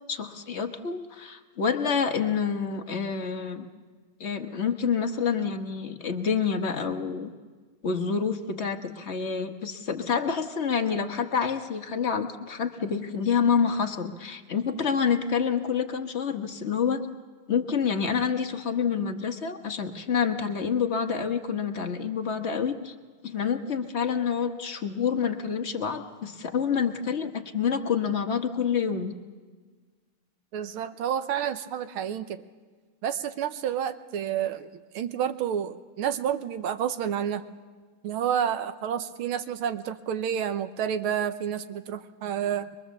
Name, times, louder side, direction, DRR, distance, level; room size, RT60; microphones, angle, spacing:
voice 1, 0.1-3.7 4.2-7.3 7.8-17.1 17.5-22.9 23.2-29.1, left 6 dB, 40° left, 5 dB, 1.2 m, -28 dB
voice 2, 30.5-32.4 33.0-34.7 34.9-37.4 38.0-42.7, right 9 dB, 90° right, 10 dB, 1.8 m, -29 dB
23.5 x 22.5 x 7.2 m, 1.4 s
omnidirectional pair, 2.3 m